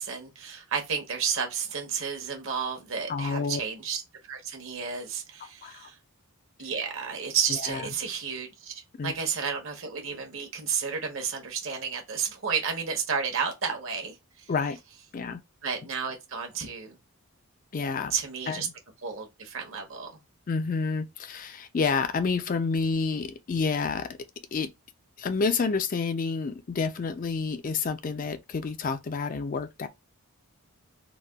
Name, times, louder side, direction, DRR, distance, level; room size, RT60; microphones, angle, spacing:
voice 1, 0.0-6.0 6.6-14.5 15.6-17.0 18.1-18.7 19.0-20.1, right 6 dB, 60° right, 0.9 m, -32 dB
voice 2, 3.1-3.6 5.6-5.9 7.7-7.8 9.0-9.1 14.5-14.8 15.1-15.4 17.7-18.1 18.5-18.6 20.5-24.1 24.5-24.7 25.2-29.9, left 4 dB, 35° left, 0.4 m, -29 dB
3.9 x 2.2 x 2.3 m
head